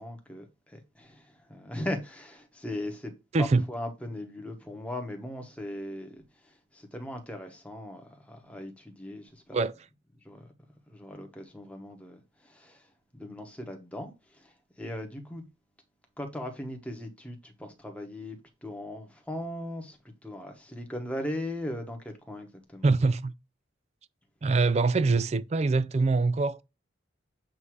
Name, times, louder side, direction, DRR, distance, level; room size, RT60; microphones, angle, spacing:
voice 1, 0.0-9.6 10.2-10.5 10.9-15.4 16.2-18.4 18.6-23.0, left 1 dB, 5° left, 1.1 m, -39 dB
voice 2, 3.3-3.6 9.5-9.7 22.8-23.3 24.4-26.6, right 3 dB, 35° right, 0.3 m, -24 dB
7.5 x 2.7 x 4.7 m
head